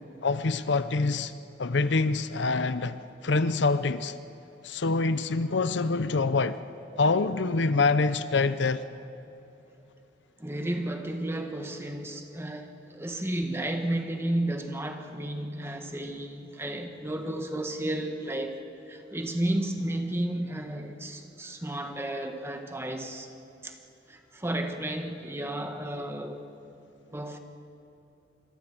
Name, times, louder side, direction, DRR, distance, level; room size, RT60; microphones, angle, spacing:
voice 1, 0.2-1.3 1.6-4.2 4.6-6.6 7.0-8.8, left 3 dB, 65° left, 0.7 m, -25 dB
voice 2, 10.4-18.6 18.9-23.3 23.6-23.8 24.1-26.4 27.1-27.4, right 1 dB, 15° right, 1.5 m, -32 dB
27.5 x 22.0 x 6.1 m
head